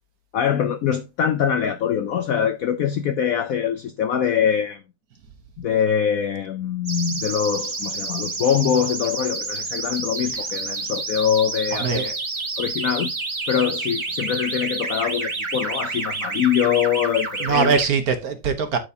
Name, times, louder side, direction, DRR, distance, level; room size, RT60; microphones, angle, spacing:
voice 1, 0.3-4.8 5.6-12.1 12.6-13.1 13.5-17.8, left 8 dB, 75° left, 0.8 m, -23 dB
sound 1, 6.9-17.9, right 3 dB, 35° right, 0.5 m, -29 dB
voice 2, 11.7-12.1 17.4-18.8, right 5 dB, 55° right, 1.4 m, -22 dB
12.5 x 4.6 x 2.7 m
omnidirectional pair, 2.1 m